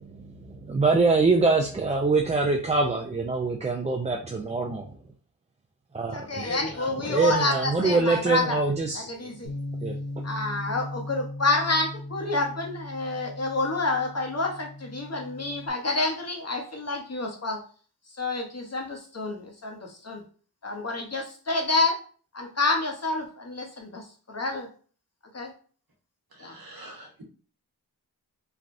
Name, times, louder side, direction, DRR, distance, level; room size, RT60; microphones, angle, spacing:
voice 1, 0.7-4.9 5.9-6.4 7.1-9.1 9.8-9.9, right 3 dB, 20° right, 1 dB, 0.3 m, -24 dB
voice 2, 6.1-8.6 8.9-9.5 10.2-17.6 18.2-20.2 20.6-22.0 22.3-24.7 25.3-25.5 26.4-26.6, left 2 dB, 40° left, 2 dB, 0.8 m, -28 dB
Bass guitar, 9.5-15.7, left 1 dB, 80° left, 0.9 m, -38 dB
voice 3, 26.3-27.2, right 1 dB, 60° right, 0 dB, 1.0 m, -46 dB
3.3 x 2.3 x 2.5 m, 0.41 s
cardioid pair, 45°, 40 cm